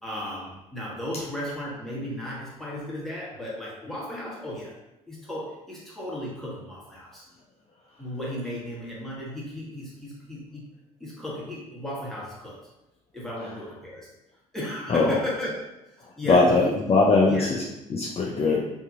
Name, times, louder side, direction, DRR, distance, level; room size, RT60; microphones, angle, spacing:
voice 1, 0.0-4.8 5.1-7.3 8.0-10.7 11.0-12.6 13.1-14.1 14.5-16.8 17.3-17.5 18.4-18.7, left 1 dB, ahead, -6 dB, 1.3 m, -35 dB
voice 2, 16.3-17.6 17.9-18.6, left 3 dB, 35° left, -3 dB, 0.5 m, -20 dB
2.7 x 2.7 x 2.5 m, 0.95 s
hypercardioid pair, 55°, 18 cm